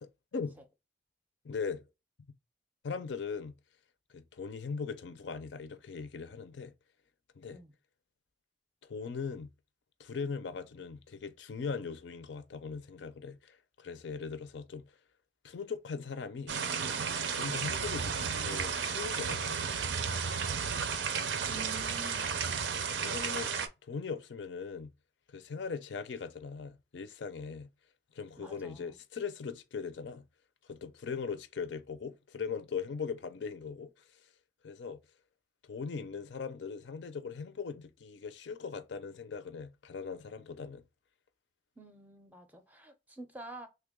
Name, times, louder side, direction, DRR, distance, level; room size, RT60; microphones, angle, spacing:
voice 1, 0.0-0.6 1.4-1.8 2.8-3.5 4.1-6.7 7.4-7.6 8.8-9.5 10.0-14.9 15.4-16.6 17.3-19.6 23.0-23.5 23.9-24.9 25.3-27.7 28.1-30.2 30.7-33.9 34.6-35.0 35.6-40.8, left 5 dB, 85° left, 0.5 m, -40 dB
sound 1, 16.5-23.7, right 6 dB, 85° right, 0.5 m, -33 dB
voice 2, 21.5-22.4 28.4-29.0 41.8-43.7, right 2 dB, 10° right, 0.4 m, -48 dB
3.3 x 2.2 x 3.6 m
head